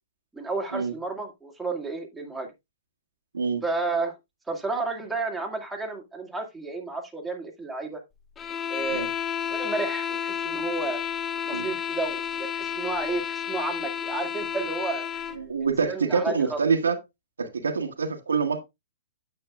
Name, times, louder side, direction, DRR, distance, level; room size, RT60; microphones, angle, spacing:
voice 1, 0.3-2.5 3.6-4.1 4.5-8.0 8.7-9.1 9.5-11.0 11.5-15.2 15.8-16.6, right 3 dB, 5° right, 2.0 m, -31 dB
sound 1, 8.4-15.4, left 9 dB, 15° left, 0.7 m, -31 dB
voice 2, 15.4-17.0 17.4-18.6, right 5 dB, 75° right, 1.4 m, -26 dB
9.4 x 8.0 x 2.4 m
figure-of-eight pair, 115°, 0 cm